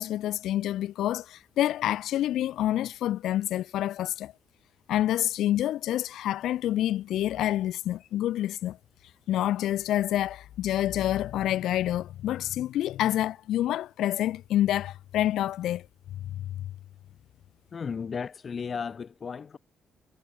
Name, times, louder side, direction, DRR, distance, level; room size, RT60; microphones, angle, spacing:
voice 1, 0.0-4.3 4.9-8.8 9.3-15.9 16.2-16.4, left 13 dB, 85° left, 3.1 m, -27 dB
voice 2, 17.7-19.6, left 6 dB, 35° left, 3.8 m, -34 dB
cardioid pair, 140°, 0 cm